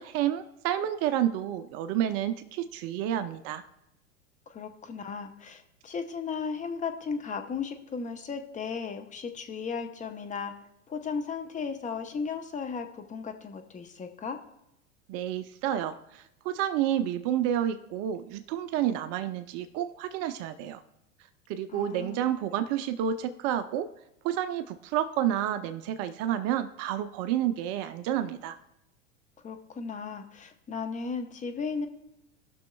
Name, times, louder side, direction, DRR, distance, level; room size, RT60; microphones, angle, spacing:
voice 1, 0.0-3.6 15.1-20.8 21.5-23.9 24.2-28.6, right 11 dB, 40° right, 11 dB, 0.5 m, -30 dB
voice 2, 4.5-10.5 10.9-14.4 21.7-22.3 29.4-31.9, left 5 dB, 20° left, 6 dB, 0.7 m, -35 dB
18.5 x 6.2 x 2.3 m, 0.86 s
hypercardioid pair, 95°, 38 cm